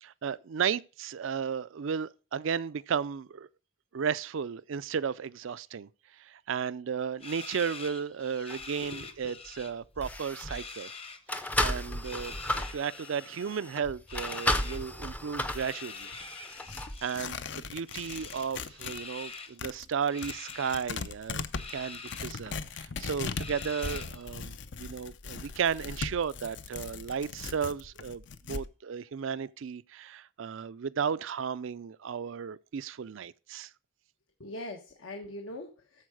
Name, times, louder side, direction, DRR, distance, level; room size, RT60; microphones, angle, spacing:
voice 1, 0.0-3.5 3.9-5.9 6.2-10.9 11.4-16.1 17.0-21.4 21.7-33.7, right 7 dB, 70° right, 0.4 m, -34 dB
sound 1, 7.2-9.7 10.0-11.2 11.9-13.3 14.1-14.8 15.5-17.4 17.9-19.6 20.1-20.8 21.5-22.2 22.7-22.8 23.4-24.3, left 4 dB, 30° left, 0.9 m, -45 dB
sound 2, 8.5-8.6 9.5-9.6 9.9-10.6 11.3-17.0 17.6-17.7, left 1 dB, 5° left, 0.5 m, -34 dB
voice 2, 8.8-9.3 34.4-36.0, left 1 dB, 75° left, 1.2 m, -42 dB
Tearing, 15.4-19.0 19.3-28.7, left 5 dB, 60° left, 0.6 m, -39 dB
14.0 x 4.7 x 4.8 m
head